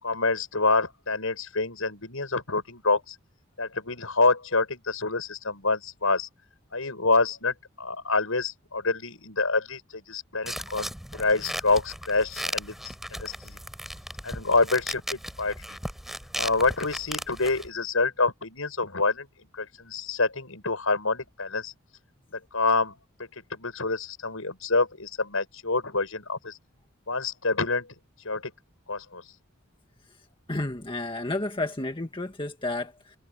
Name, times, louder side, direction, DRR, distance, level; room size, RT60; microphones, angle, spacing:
voice 1, 0.0-3.2 3.6-6.3 6.7-12.7 13.1-13.6 14.2-15.8 16.4-19.3 19.5-21.7 22.3-22.9 23.2-26.6 27.1-27.9 28.2-28.5 28.9-29.2, left 3 dB, 75° left, 6.5 m, -27 dB
sound 1, 10.5-17.7, equal, ahead, 7.1 m, -36 dB
voice 2, 30.5-33.2, left 2 dB, 25° left, 1.8 m, -31 dB
head